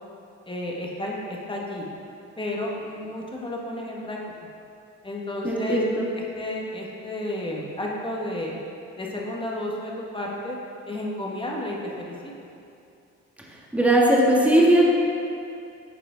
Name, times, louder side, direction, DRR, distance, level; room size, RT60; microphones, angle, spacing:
voice 1, 0.5-1.9 2.4-4.2 5.0-5.8 6.3-8.6 9.0-10.6 10.9-12.3, left 1 dB, 15° left, -3 dB, 1.3 m, -32 dB
voice 2, 5.4-6.1 13.7-14.9, right 1 dB, 5° right, -4 dB, 1.4 m, -18 dB
9.2 x 4.8 x 3.8 m, 2.6 s
cardioid pair, 90°, 30 cm